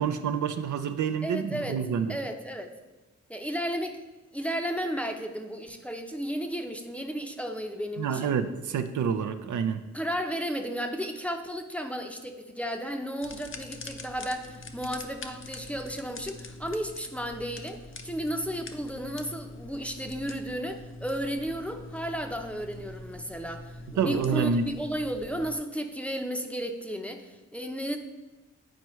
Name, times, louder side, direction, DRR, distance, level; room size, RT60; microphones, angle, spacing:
voice 1, 0.0-2.2 8.0-9.8 24.0-24.6, right 7 dB, 75° right, 9 dB, 0.5 m, -28 dB
voice 2, 1.2-1.8 2.1-2.7 3.3-4.0 4.3-8.3 9.9-28.0, equal, 5° left, 4 dB, 0.6 m, -33 dB
sound 1, 13.2-25.6, left 2 dB, 45° left, 0.6 m, -44 dB
9.2 x 4.5 x 3.1 m, 1.1 s
cardioid pair, 80°, 30 cm